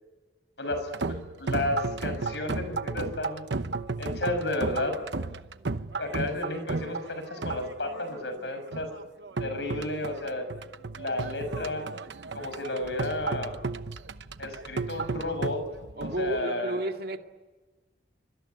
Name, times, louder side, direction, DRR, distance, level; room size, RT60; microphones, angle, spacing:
voice 1, 0.6-3.4 4.0-4.9 6.0-8.9 9.4-10.5 11.0-11.9 12.3-13.5 14.4-15.6 16.0-16.8, left 2 dB, 80° left, 8 dB, 6.4 m, -32 dB
sound 1, 0.7-16.4, right 3 dB, 85° right, 1.0 m, -34 dB
voice 2, 16.0-17.2, right 1 dB, 60° right, 5 dB, 2.1 m, -31 dB
25.0 x 23.5 x 9.5 m, 1.2 s
head